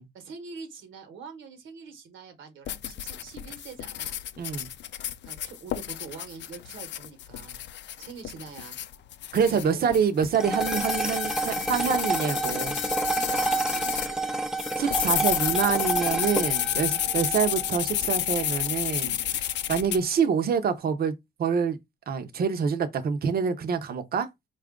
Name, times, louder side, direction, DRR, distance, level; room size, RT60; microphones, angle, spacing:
voice 1, 0.1-4.2 5.2-7.6 8.0-8.8 9.4-10.0 13.1-14.4 14.8-15.0 16.9-17.2, right 5 dB, 75° right, 1.1 m, -44 dB
sound 1, 2.7-14.1 14.6-20.0, left 11 dB, 65° left, 0.5 m, -31 dB
voice 2, 4.4-4.7 9.3-12.8 14.8-21.8 22.1-24.3, right 6 dB, 50° right, 0.7 m, -26 dB
sound 2, 10.3-18.9, right 2 dB, 5° right, 0.5 m, -30 dB
4.2 x 2.5 x 3.6 m
cardioid pair, 90°, 20 cm